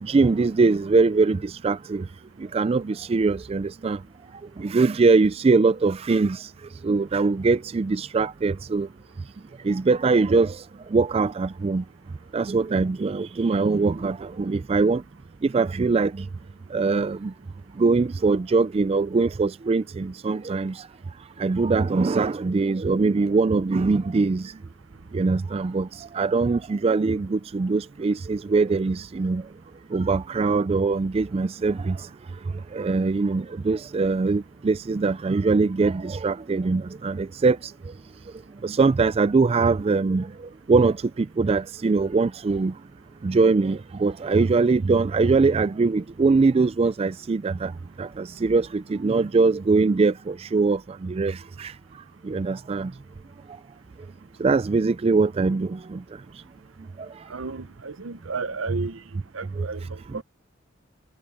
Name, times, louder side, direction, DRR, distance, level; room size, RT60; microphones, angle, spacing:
voice 1, 0.0-2.1 2.5-4.0 4.6-6.5 6.8-8.9 9.6-10.6 10.9-11.8 12.3-15.0 15.4-16.3 16.7-17.3 17.8-20.8 21.4-24.5 25.1-25.9 26.1-29.4 29.9-32.0 32.7-37.7 38.6-40.3 40.7-42.7 43.2-47.7 48.0-51.7 52.2-52.9 54.4-56.0 59.6-59.7 60.1-60.2, right 4 dB, 30° right, 0.3 m, -22 dB
voice 2, 57.3-59.0 59.3-60.2, right 4 dB, 80° right, 0.9 m, -33 dB
head